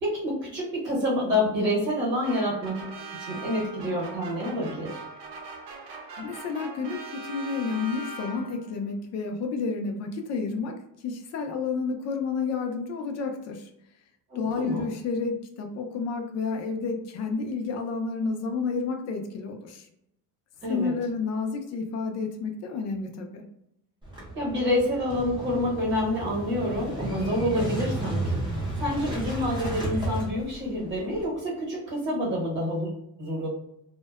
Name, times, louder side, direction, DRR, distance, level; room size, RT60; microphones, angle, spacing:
voice 1, 0.0-5.0 14.3-14.9 20.6-20.9 24.3-33.5, left 1 dB, 30° right, -3 dB, 0.9 m, -28 dB
sound 1, 2.2-8.8, right 3 dB, 90° right, 0.7 m, -41 dB
voice 2, 6.2-13.7 14.4-19.9 20.7-23.5, left 4 dB, 45° left, 4 dB, 0.4 m, -30 dB
Motorcycle / Engine starting, 24.0-31.3, right 2 dB, 15° right, 0.5 m, -33 dB
2.5 x 2.1 x 2.3 m, 0.80 s
cardioid pair, 170°, 39 cm